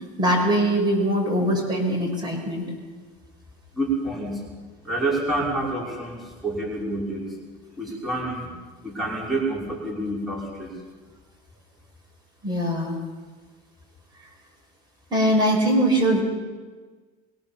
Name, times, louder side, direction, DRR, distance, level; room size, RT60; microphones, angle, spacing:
voice 1, 0.2-2.7 12.4-13.0 15.1-16.2, right 1 dB, 20° right, 0 dB, 6.1 m, -22 dB
voice 2, 3.7-4.4 4.8-7.4 7.8-8.5 8.8-10.7, right 2 dB, ahead, -4 dB, 5.8 m, -28 dB
23.5 x 22.0 x 7.3 m, 1.4 s
cardioid pair, 140°, 20 cm